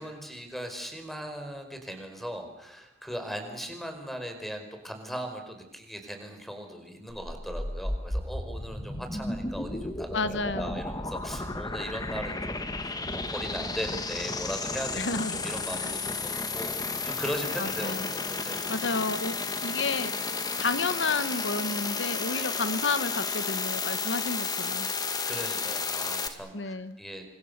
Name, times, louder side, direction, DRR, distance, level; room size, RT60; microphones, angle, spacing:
voice 1, 0.0-10.2 10.6-16.8 17.0-18.6 22.3-22.6 25.3-27.2, equal, ahead, 6 dB, 4.9 m, -38 dB
sound 1, 7.1-26.3, left 3 dB, 20° left, 2.0 m, -33 dB
voice 2, 10.1-10.8 15.0-15.4 15.8-15.9 17.6-18.1 18.7-19.4 19.6-24.9 26.5-27.0, left 3 dB, 90° left, 12 dB, 1.4 m, -31 dB
29.5 x 25.0 x 6.8 m, 0.85 s
head